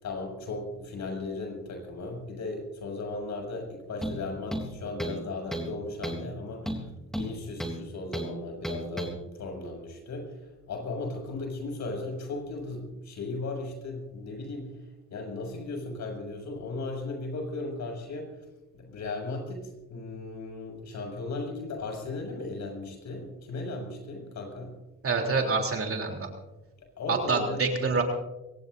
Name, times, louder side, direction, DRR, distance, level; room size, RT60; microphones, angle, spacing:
voice 1, 0.0-6.8 7.1-14.7 15.1-18.3 18.7-24.7 26.8-27.6, left 2 dB, 65° left, 2 dB, 6.8 m, -36 dB
sound 1, 4.0-4.2 4.5-5.2 5.5-5.7 6.0-6.3 6.7-7.8 8.1-8.3 8.6-9.1, equal, ahead, 3.3 m, -33 dB
voice 2, 25.0-26.3 27.1-28.0, right 4 dB, 45° right, 2 dB, 3.5 m, -26 dB
23.5 x 18.0 x 2.7 m, 1.0 s
cardioid pair, 90°, 30 cm